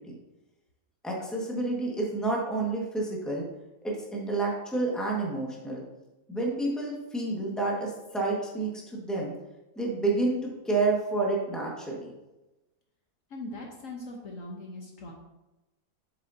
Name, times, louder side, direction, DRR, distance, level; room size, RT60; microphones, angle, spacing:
voice 1, 1.0-3.4 3.8-5.8 6.3-9.3 9.7-12.1, right 2 dB, ahead, -3 dB, 1.4 m, -29 dB
voice 2, 13.3-15.1, left 2 dB, 60° left, -1 dB, 1.2 m, -40 dB
7.9 x 7.0 x 2.7 m, 1.0 s
omnidirectional pair, 1.7 m